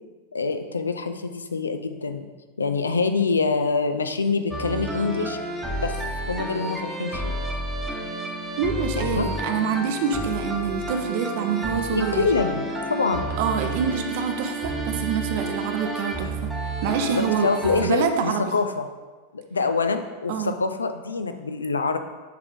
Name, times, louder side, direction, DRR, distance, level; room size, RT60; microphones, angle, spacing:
voice 1, 0.3-2.3 2.6-5.4 5.8-6.0 6.3-7.4 9.0-9.3 11.9-13.3 17.0-18.8 19.3-22.0, left 4 dB, 75° left, 8 dB, 0.4 m, -25 dB
sound 1, 4.5-17.9, right 1 dB, ahead, 1.0 m, -30 dB
voice 2, 8.6-12.3 13.4-16.5 16.8-17.5 17.8-18.4 20.3-20.6, right 7 dB, 50° right, 6 dB, 0.6 m, -26 dB
7.5 x 3.6 x 3.6 m, 1.3 s
figure-of-eight pair, 90°, 0 cm